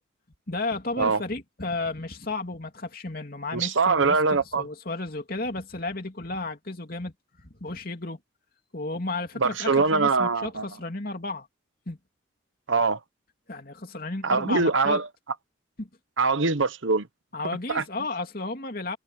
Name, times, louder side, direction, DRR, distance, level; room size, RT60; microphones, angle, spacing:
voice 1, 0.5-7.1 7.4-8.2 8.7-11.5 11.9-12.0 13.5-15.0 15.8-15.9 17.3-19.0, left 2 dB, 45° left, 3.0 m, -33 dB
voice 2, 3.5-4.6 9.4-10.6 12.7-13.0 14.2-15.0 16.2-17.1 17.7-17.8, right 4 dB, 75° right, 1.0 m, -23 dB
head